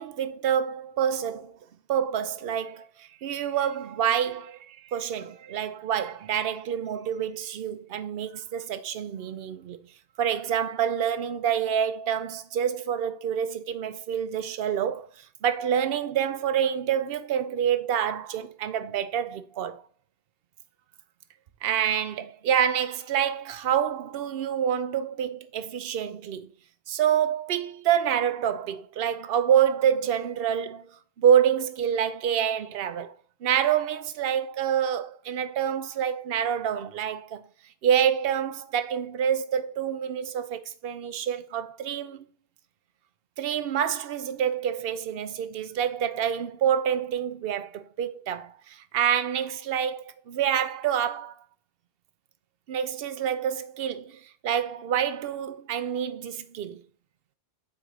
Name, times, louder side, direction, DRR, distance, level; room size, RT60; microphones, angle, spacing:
voice 1, 0.0-1.5 1.9-9.8 10.2-15.1 15.4-19.8 21.6-26.5 26.9-30.9 31.2-33.1 33.4-37.4 37.8-42.2 43.4-51.4 52.7-56.8, right 9 dB, 60° right, 0.8 m, -27 dB
8.5 x 4.6 x 4.0 m
omnidirectional pair, 1.2 m